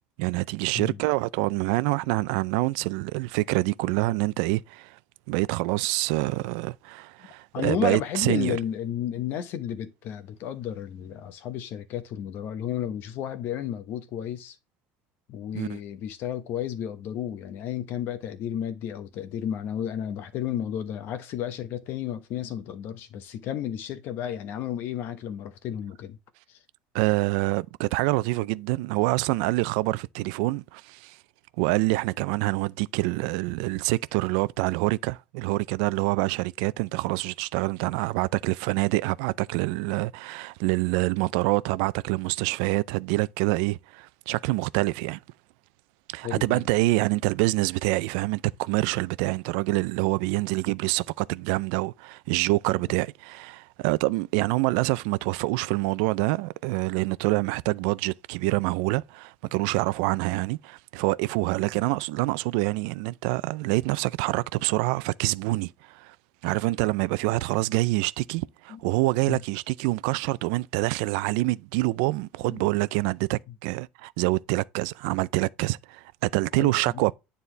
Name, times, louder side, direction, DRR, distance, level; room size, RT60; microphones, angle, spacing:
voice 1, 0.2-5.0 5.3-8.6 15.5-15.8 26.9-31.2 31.6-45.2 46.1-66.2 66.4-77.1, right 21 dB, 75° right, 0.4 m, -26 dB
voice 2, 7.5-14.6 15.3-26.2 26.5-26.6 46.2-46.6 52.3-52.4 68.7-68.8 69.3-69.4 72.4-72.7 76.5-77.0, left 10 dB, 50° left, 1.1 m, -32 dB
9.4 x 4.1 x 3.3 m
cardioid pair, 160°, 5 cm